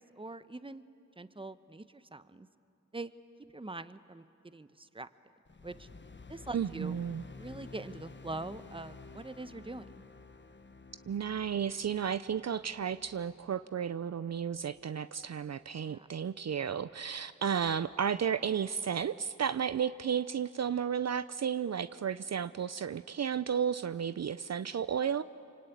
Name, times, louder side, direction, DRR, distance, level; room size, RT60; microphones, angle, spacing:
voice 1, 0.2-0.8 1.2-2.5 2.9-3.1 3.5-5.1 5.6-5.9 6.3-7.0 7.4-9.9 15.8-16.1, right 2 dB, 15° right, 13 dB, 0.9 m, -43 dB
sound 1, 5.4-15.9, left 4 dB, 35° left, 1.2 m, -53 dB
voice 2, 6.5-7.2 11.1-25.2, right 8 dB, 60° right, 14 dB, 0.5 m, -33 dB
25.5 x 24.5 x 9.2 m, 2.7 s
cardioid pair, 55°, 30 cm